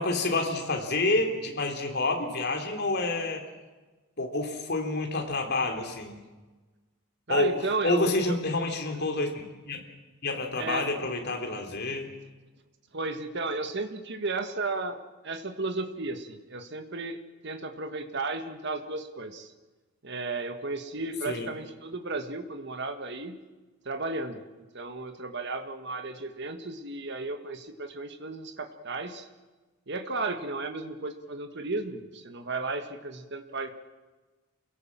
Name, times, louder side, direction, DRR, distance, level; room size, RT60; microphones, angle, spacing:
voice 1, 0.0-3.4 4.2-6.1 7.3-9.8 10.2-12.1 21.3-21.5, left 2 dB, 50° left, 3 dB, 3.2 m, -28 dB
voice 2, 7.3-8.4 10.6-10.9 12.9-15.0 15.2-17.2 17.4-19.5 20.0-23.4 23.9-24.4 24.7-29.3 29.9-33.7, right 3 dB, 50° right, 7 dB, 1.7 m, -34 dB
28.5 x 17.0 x 7.5 m, 1.3 s
head